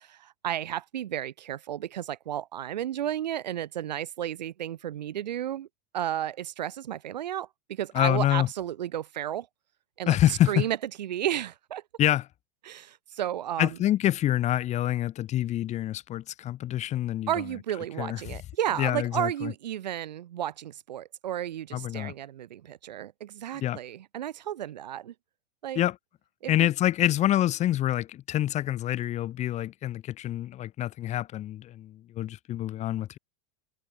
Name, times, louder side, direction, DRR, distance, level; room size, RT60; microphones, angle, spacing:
voice 1, 0.0-5.7 5.9-9.5 10.0-11.8 12.7-13.8 17.3-25.1 25.6-25.8 26.4-26.7, right 11 dB, 85° right, 6.0 m, -33 dB
voice 2, 7.9-8.5 10.1-10.7 12.0-12.3 13.6-17.3 18.0-18.2 18.8-19.5 21.7-22.1 23.6-23.8 25.8-26.0 26.5-33.2, left 13 dB, 35° left, 1.8 m, -26 dB
supercardioid pair, 125°, 21 cm